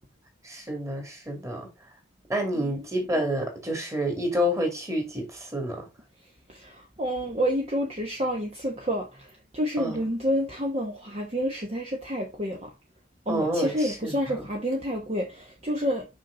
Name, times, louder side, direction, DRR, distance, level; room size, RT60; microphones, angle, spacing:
voice 1, 0.4-1.7 2.3-5.9 9.8-10.0 13.3-14.5, equal, 15° right, 2.4 m, -29 dB
voice 2, 6.5-12.7 13.3-16.1, equal, 30° right, 1.2 m, -29 dB
6.2 x 5.7 x 3.9 m
head